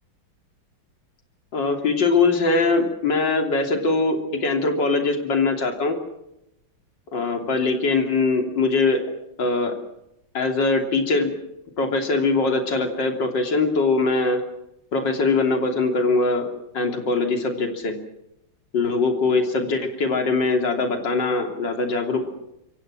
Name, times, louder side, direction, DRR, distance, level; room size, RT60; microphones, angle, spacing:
voice 1, 1.5-6.0 7.1-9.0 9.4-9.8 10.3-11.4 11.8-14.4 14.9-16.5 16.7-18.0 18.7-22.3, left 3 dB, 60° left, 4 dB, 3.7 m, -22 dB
27.0 x 24.0 x 6.3 m, 0.86 s
omnidirectional pair, 2.3 m